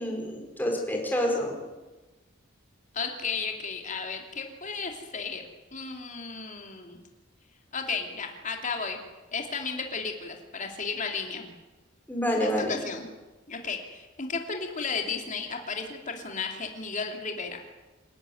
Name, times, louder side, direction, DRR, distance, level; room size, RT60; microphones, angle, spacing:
voice 1, 0.0-1.6 12.1-12.8, equal, 10° left, 0 dB, 4.8 m, -28 dB
voice 2, 2.9-5.4 5.7-7.0 7.7-9.0 9.3-11.5 12.3-13.1 13.5-17.6, left 5 dB, 40° left, 3 dB, 2.9 m, -34 dB
27.5 x 11.5 x 9.4 m, 1.2 s
head